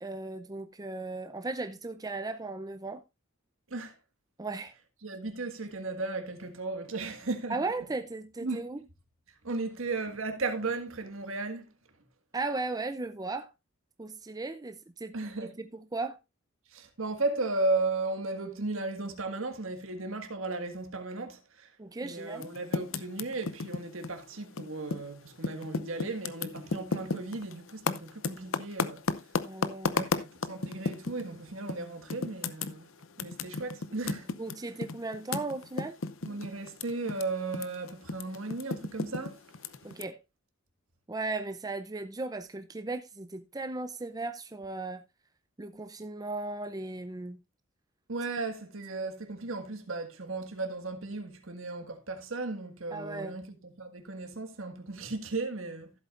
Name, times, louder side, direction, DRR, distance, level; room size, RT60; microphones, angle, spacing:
voice 1, 0.0-3.0 4.4-4.7 7.5-8.8 12.3-13.5 14.0-15.2 15.9-16.2 21.8-22.5 29.4-30.0 34.4-36.0 39.8-40.2 41.1-45.0 45.6-47.4 52.9-53.4, right 3 dB, 20° right, 0.6 m, -36 dB
voice 2, 5.0-7.6 8.4-8.6 9.4-11.7 15.1-15.5 16.7-21.7 22.0-29.0 29.9-32.9 33.2-34.3 36.2-39.4 48.1-55.9, right 3 dB, 70° right, 1.8 m, -35 dB
Typing, 22.3-25.1 25.4-31.3 31.7-31.8 32.1-37.2 37.5-40.0, left 4 dB, 70° left, 0.7 m, -33 dB
14.5 x 8.0 x 2.5 m
head